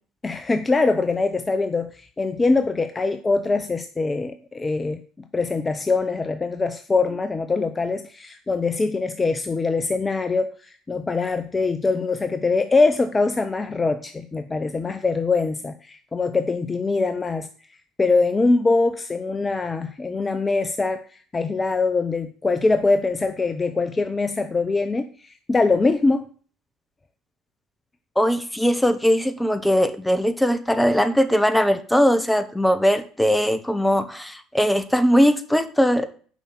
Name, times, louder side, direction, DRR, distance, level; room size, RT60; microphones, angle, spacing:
voice 1, 0.2-5.0 5.3-17.5 18.0-26.3, left 3 dB, 25° left, 10 dB, 0.7 m, -23 dB
voice 2, 28.2-36.1, equal, 5° left, 11 dB, 1.2 m, -20 dB
7.2 x 5.6 x 7.3 m, 0.44 s
hypercardioid pair, 60°, 0 cm